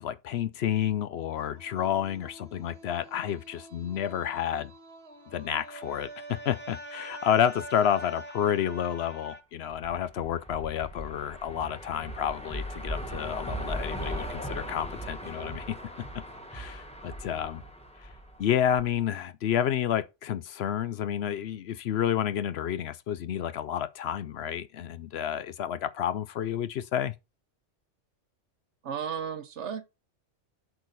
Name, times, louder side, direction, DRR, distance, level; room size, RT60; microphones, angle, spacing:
voice 1, 0.0-4.7 5.3-15.8 16.1-16.2 16.5-17.6 18.4-27.1, left 9 dB, 65° left, 0.8 m, -30 dB
sound 1, 1.4-9.4, right 1 dB, 60° right, 1.5 m, -45 dB
sound 2, 9.7-19.0, equal, 5° left, 1.2 m, -38 dB
voice 2, 28.8-29.8, right 7 dB, 75° right, 1.2 m, -34 dB
8.0 x 4.9 x 4.0 m
omnidirectional pair, 1.2 m